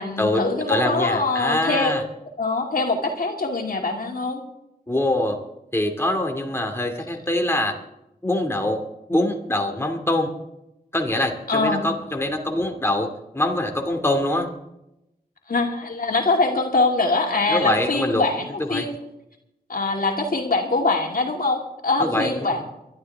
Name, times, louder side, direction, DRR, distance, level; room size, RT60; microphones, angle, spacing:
voice 1, 0.0-1.9 2.4-4.4 11.5-11.9 15.5-18.9 19.7-22.6, left 3 dB, 60° left, 1 dB, 2.6 m, -23 dB
voice 2, 0.7-2.0 4.9-5.4 5.7-7.7 8.2-8.8 9.1-10.3 10.9-13.1 13.3-14.5 17.5-18.3 18.7-18.9 22.0-22.6, left 1 dB, 15° left, 3 dB, 2.5 m, -24 dB
23.0 x 12.0 x 3.6 m, 0.87 s
cardioid pair, 55°, 16 cm